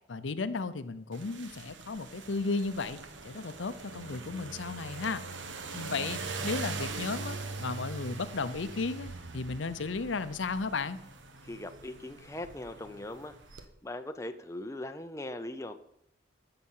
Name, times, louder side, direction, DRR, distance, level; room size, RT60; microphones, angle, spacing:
voice 1, 0.1-3.0 3.2-5.2 5.7-11.0, left 4 dB, 85° left, 13 dB, 0.7 m, -34 dB
sound 1, 1.1-13.7, right 3 dB, 80° right, 1.1 m, -42 dB
voice 2, 11.4-13.3 13.8-15.8, left 1 dB, 15° left, 7 dB, 0.6 m, -40 dB
13.0 x 7.8 x 5.6 m, 0.76 s
head